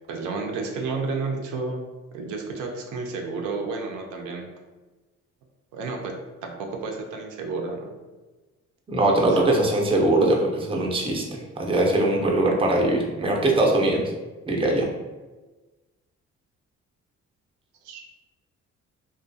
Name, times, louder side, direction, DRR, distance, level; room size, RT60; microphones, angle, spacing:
voice 1, 0.1-1.8 2.1-4.5 5.7-7.9 17.8-18.0, right 4 dB, 85° right, 2 dB, 0.5 m, -31 dB
voice 2, 8.9-11.2 11.6-14.0 14.5-14.9, right 2 dB, 20° right, -1 dB, 0.5 m, -21 dB
2.4 x 2.2 x 2.6 m, 1.2 s
cardioid pair, 90°, 30 cm